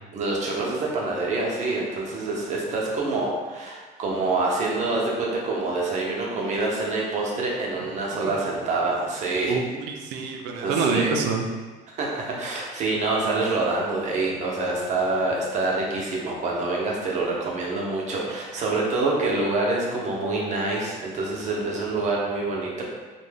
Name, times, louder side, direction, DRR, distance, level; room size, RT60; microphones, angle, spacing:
voice 1, 0.1-9.6 10.6-11.2 12.0-22.8, right 3 dB, 45° right, -3 dB, 0.7 m, -26 dB
voice 2, 9.5-11.4, right 5 dB, 90° right, 2 dB, 0.4 m, -26 dB
2.6 x 2.2 x 3.3 m, 1.3 s
cardioid pair, 115°, 17 cm